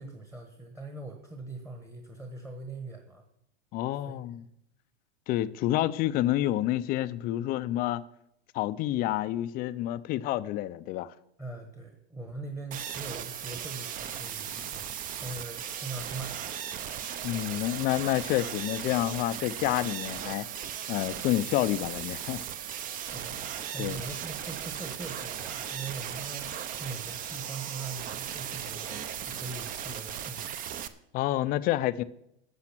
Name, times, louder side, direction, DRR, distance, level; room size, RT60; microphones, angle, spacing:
voice 1, 0.0-3.2 3.9-4.5 11.4-14.9 15.2-16.6 23.1-23.4 23.7-30.5, right 3 dB, 5° right, 1.2 m, -41 dB
voice 2, 3.7-4.4 5.3-8.0 8.5-11.1 17.2-20.5 20.9-22.4 23.8-24.0 31.1-32.0, left 14 dB, 30° left, 0.5 m, -28 dB
sound 1, 12.7-30.9, right 9 dB, 25° right, 0.6 m, -37 dB
12.0 x 7.7 x 6.0 m
hypercardioid pair, 130°, 32 cm